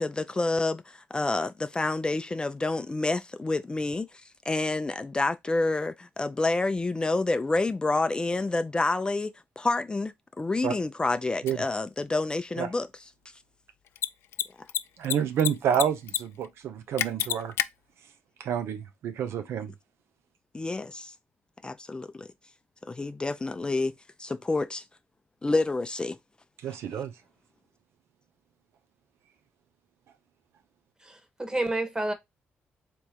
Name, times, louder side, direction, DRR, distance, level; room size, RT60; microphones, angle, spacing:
voice 1, 0.0-4.1 4.5-12.9 20.5-21.1 21.6-22.3 22.9-23.9 24.2-24.8 25.4-26.2, left 2 dB, 20° left, 0.4 m, -28 dB
Mechanisms, 11.5-11.6 13.9-14.1 14.3-14.4 14.7-15.5 15.7-16.2 16.4-16.5 17.0-17.7, left 12 dB, 80° left, 0.3 m, -27 dB
voice 2, 15.0-17.5 18.4-19.7 26.6-27.1, right 8 dB, 80° right, 0.6 m, -29 dB
voice 3, 31.1-32.1, right 2 dB, 20° right, 1.4 m, -29 dB
3.5 x 3.0 x 4.4 m
cardioid pair, 80°, 4 cm